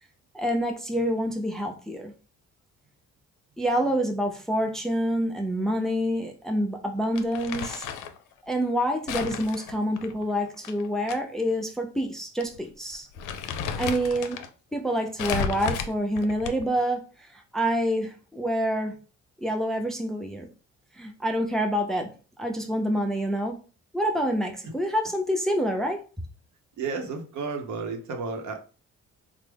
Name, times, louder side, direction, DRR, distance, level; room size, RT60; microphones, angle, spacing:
voice 1, 0.3-2.1 3.6-7.8 8.5-13.1 13.5-14.4 14.7-19.0 19.4-20.5 21.0-22.1 22.4-23.6 23.9-26.0, equal, ahead, 0.5 m, -27 dB
Crumpling crinkling, 7.2-8.2 9.1-11.2 11.5-11.6 12.4-12.6 12.9-14.5 15.2-16.8, left 7 dB, 90° left, 0.5 m, -33 dB
voice 2, 26.8-28.6, right 4 dB, 75° right, 0.8 m, -32 dB
3.4 x 2.1 x 3.3 m
cardioid pair, 90°, 30 cm